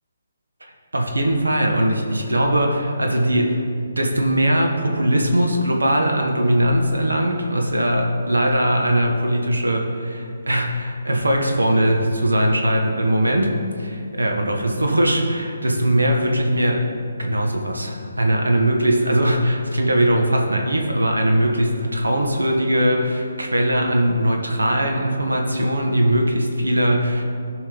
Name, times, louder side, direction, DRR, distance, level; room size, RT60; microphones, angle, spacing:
voice 1, 0.9-3.7 4.0-16.9 17.2-27.2, right 1 dB, 90° right, 2 dB, 1.1 m, -20 dB
13.0 x 5.2 x 3.9 m, 2.4 s
figure-of-eight pair, 145°, 0 cm